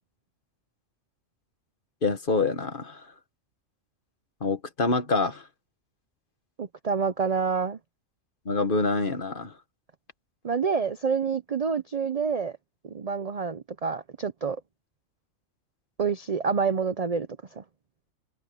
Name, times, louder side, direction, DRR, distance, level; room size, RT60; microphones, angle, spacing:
voice 1, 2.0-3.1 4.4-5.5 8.4-9.5, left 3 dB, 40° left, 1.6 m, -26 dB
voice 2, 6.6-7.8 10.4-12.6 12.8-14.6 16.0-17.3 17.6-17.7, right 5 dB, 40° right, 0.5 m, -27 dB
omnidirectional pair, 1.4 m